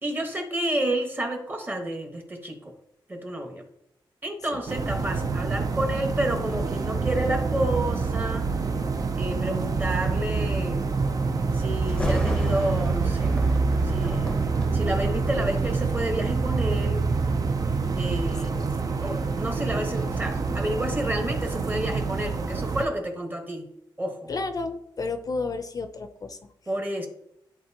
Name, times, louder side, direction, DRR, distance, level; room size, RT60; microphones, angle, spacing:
voice 1, 0.0-2.7 3.1-3.7 4.2-8.5 9.1-10.8 11.5-13.4 13.8-14.5 14.7-17.1 18.0-18.6 19.0-23.7 24.0-24.3 26.7-27.1, right 1 dB, 20° right, 4 dB, 1.3 m, -30 dB
sound 1, 4.7-22.9, right 4 dB, 45° right, 0.5 m, -26 dB
Thunder, 11.9-16.9 17.5-17.7 18.4-21.2 21.5-21.6, left 1 dB, 10° left, 0.7 m, -36 dB
voice 2, 24.3-26.4, left 3 dB, 45° left, 8 dB, 0.5 m, -31 dB
10.0 x 4.0 x 2.9 m, 0.76 s
cardioid pair, 100°, 9 cm